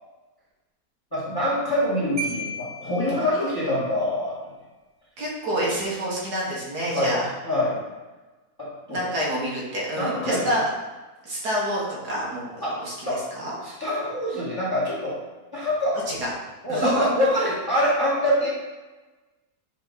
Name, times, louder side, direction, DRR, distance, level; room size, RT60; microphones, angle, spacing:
voice 1, 1.1-4.3 6.9-7.8 8.6-9.0 9.9-10.5 12.6-12.8 13.0-13.2 13.6-15.2 15.5-16.0 16.6-18.5, left 1 dB, 15° left, -7 dB, 1.6 m, -25 dB
Marimba xylophone, 2.2-3.9, right 2 dB, 45° right, 1.1 m, -35 dB
voice 2, 5.2-7.3 8.9-10.7 11.2-12.5 12.8-13.6 16.1-16.3 16.7-17.1, right 1 dB, 80° right, -5 dB, 2.0 m, -28 dB
5.7 x 4.3 x 4.0 m, 1.2 s
omnidirectional pair, 1.7 m